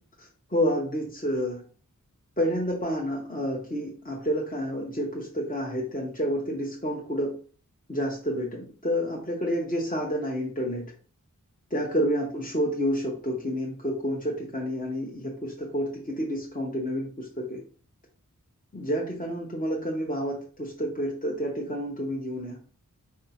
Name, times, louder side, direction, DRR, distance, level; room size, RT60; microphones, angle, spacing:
voice 1, 0.2-1.6 2.4-7.3 7.9-10.9 11.7-17.6 18.7-22.6, equal, 25° left, -2 dB, 0.8 m, -29 dB
4.6 x 2.7 x 2.8 m, 0.42 s
wide cardioid pair, 40°, 33 cm